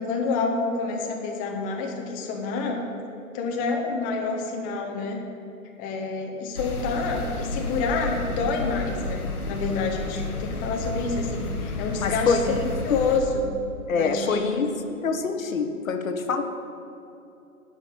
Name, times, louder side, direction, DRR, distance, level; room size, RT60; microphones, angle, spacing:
voice 1, 0.0-2.8 3.3-5.2 5.8-12.5 12.8-13.5 13.9-14.6, left 4 dB, 20° left, 1 dB, 0.9 m, -28 dB
sound 1, 6.6-13.2, left 2 dB, 90° left, 1.1 m, -31 dB
voice 2, 12.0-13.0 13.9-14.7 15.0-16.4, left 5 dB, 65° left, 6 dB, 1.0 m, -25 dB
10.5 x 5.3 x 6.4 m, 2.7 s
figure-of-eight pair, 120°, 43 cm